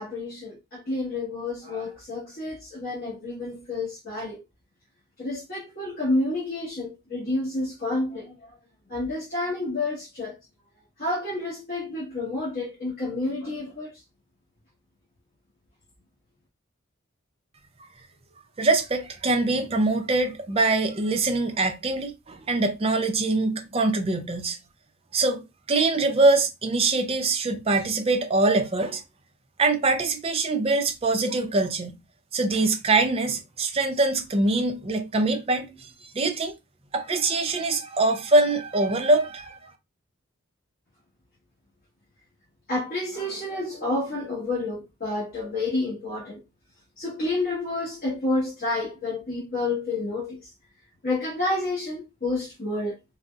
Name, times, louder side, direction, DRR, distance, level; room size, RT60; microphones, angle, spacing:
voice 1, 0.0-4.4 5.2-8.5 8.9-10.4 11.0-14.0 42.7-46.4 47.0-50.5 51.0-52.9, left 2 dB, 45° left, 1.2 m, -29 dB
voice 2, 18.6-24.6 25.1-25.4 25.7-29.0 29.6-32.0 32.3-35.9 36.1-36.5 36.9-39.7, right 2 dB, 30° right, 0.5 m, -23 dB
3.7 x 2.0 x 2.3 m
head